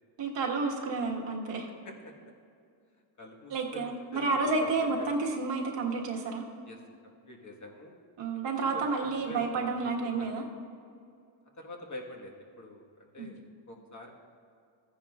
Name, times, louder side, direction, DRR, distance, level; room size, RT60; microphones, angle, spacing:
voice 1, 0.2-1.7 3.5-6.4 8.2-10.4 13.2-13.3, right 3 dB, 65° right, -1 dB, 1.5 m, -30 dB
voice 2, 3.2-5.2 6.6-6.8 7.0-8.0 8.3-10.3 11.6-14.1, left 1 dB, 40° left, 0 dB, 1.4 m, -46 dB
14.5 x 9.9 x 2.4 m, 2.4 s
cardioid pair, 105°, 47 cm